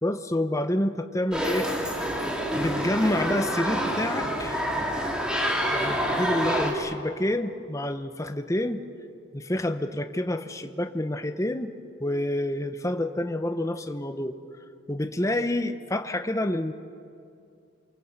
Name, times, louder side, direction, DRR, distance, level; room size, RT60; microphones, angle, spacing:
voice 1, 0.0-1.7 2.6-4.6 5.7-8.8 9.3-11.7 12.0-14.3 14.9-16.7, left 1 dB, 15° left, 8 dB, 0.9 m, -28 dB
sound 1, 1.3-6.7, equal, 5° right, 2.7 m, -27 dB
28.5 x 24.0 x 8.1 m, 2.4 s
head